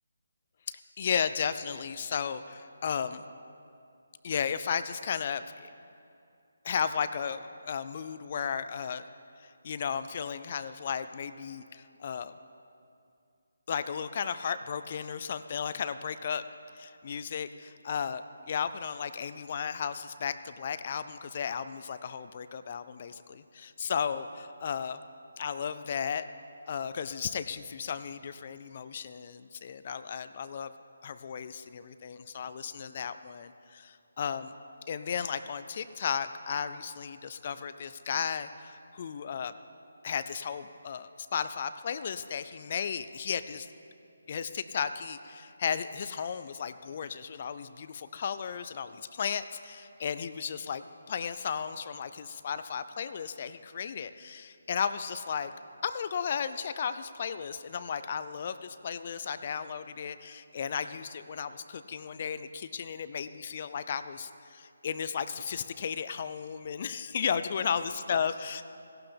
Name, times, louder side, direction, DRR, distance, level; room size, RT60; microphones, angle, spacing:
voice 1, 1.0-3.2 4.2-5.7 6.6-9.0 9.4-12.3 13.7-16.4 16.8-25.0 25.4-26.3 26.7-30.7 31.0-34.5 34.9-39.5 40.0-43.7 44.3-55.5 55.8-68.6, left 7 dB, 40° left, 12 dB, 0.4 m, -34 dB
16.5 x 11.5 x 3.4 m, 2.5 s
figure-of-eight pair, 155°, 0 cm